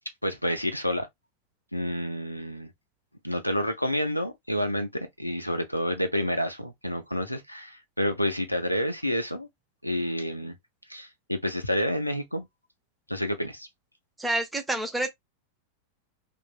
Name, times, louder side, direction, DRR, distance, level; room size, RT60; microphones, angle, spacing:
voice 1, 0.2-1.1 1.7-2.7 3.2-9.5 9.8-10.6 10.9-12.5 13.1-13.7, left 1 dB, 90° left, 0.6 m, -29 dB
voice 2, 14.2-15.1, right 2 dB, 5° right, 0.8 m, -28 dB
3.0 x 2.5 x 2.4 m
figure-of-eight pair, 90°, 0 cm